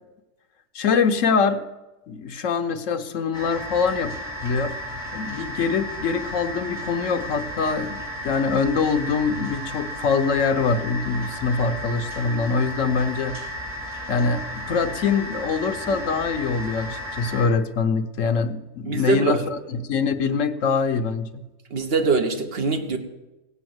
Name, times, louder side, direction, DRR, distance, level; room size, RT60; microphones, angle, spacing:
voice 1, 0.7-1.6 2.1-4.7 5.1-13.4 14.1-21.5, left 5 dB, 80° left, 7 dB, 1.2 m, -24 dB
sound 1, 3.3-17.5, equal, 10° right, 4.7 m, -34 dB
voice 2, 18.9-19.4 21.7-23.0, right 4 dB, 55° right, 5 dB, 1.4 m, -23 dB
17.0 x 6.3 x 7.8 m, 1.0 s
omnidirectional pair, 1.3 m